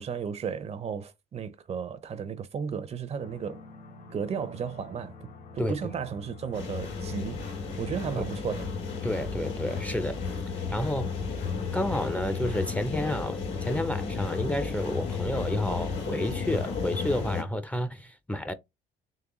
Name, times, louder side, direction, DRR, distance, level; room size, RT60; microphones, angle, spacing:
voice 1, 0.0-3.6 4.1-7.4 7.8-8.7, right 7 dB, 40° right, 0.5 m, -34 dB
sound 1, 3.2-9.8, left 4 dB, 70° left, 1.6 m, -47 dB
sound 2, 6.5-17.4, left 5 dB, 85° left, 2.0 m, -33 dB
voice 2, 9.0-10.2 10.7-11.1 11.7-18.5, left 1 dB, 10° left, 0.4 m, -30 dB
3.7 x 3.2 x 2.9 m
cardioid pair, 110°, 17 cm